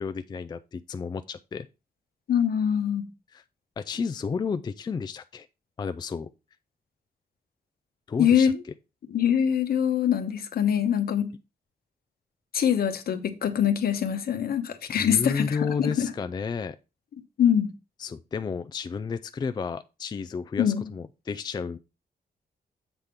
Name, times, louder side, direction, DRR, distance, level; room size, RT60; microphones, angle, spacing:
voice 1, 0.0-1.7 3.3-3.4 3.8-5.5 5.8-6.3 8.1-8.5 14.9-16.8 18.0-21.8, left 5 dB, 25° left, 0.3 m, -32 dB
voice 2, 2.3-3.1 8.2-8.6 9.1-11.3 12.5-16.1 17.4-17.7 20.6-20.8, left 8 dB, 70° left, 1.0 m, -24 dB
8.1 x 3.6 x 5.8 m
wide cardioid pair, 180°, 16 cm